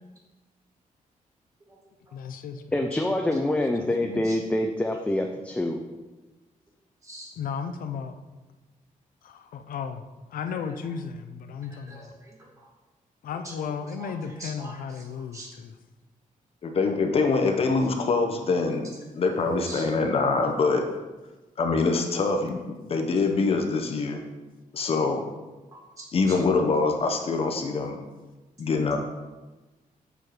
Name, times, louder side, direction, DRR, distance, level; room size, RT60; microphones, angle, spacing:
voice 1, 2.1-2.6 3.8-4.2 7.4-8.2 9.2-10.0 10.3-12.1 13.2-15.7, left 6 dB, 80° left, 8 dB, 0.5 m, -35 dB
voice 2, 2.7-5.8, left 1 dB, 10° left, 3 dB, 0.4 m, -26 dB
voice 3, 11.7-12.7 13.4-13.5 14.0-14.8 15.1-15.5 19.6-19.9 26.0-26.4, right 1 dB, 20° right, -2 dB, 1.6 m, -43 dB
voice 4, 16.6-18.9 19.2-20.9 21.6-24.2 24.7-25.2 26.1-28.0 28.6-29.0, left 4 dB, 45° left, 4 dB, 0.6 m, -24 dB
6.9 x 4.4 x 4.8 m, 1.2 s
wide cardioid pair, 180°, 14 cm